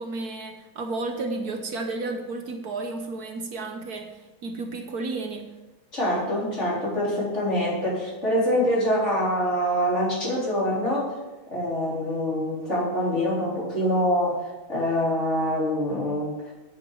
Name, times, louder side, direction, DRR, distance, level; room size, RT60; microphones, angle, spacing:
voice 1, 0.0-5.5, right 3 dB, 65° right, 5 dB, 1.5 m, -32 dB
voice 2, 5.9-11.1 11.5-16.3, equal, 40° left, -5 dB, 4.2 m, -25 dB
9.0 x 7.9 x 7.3 m, 1.1 s
omnidirectional pair, 1.8 m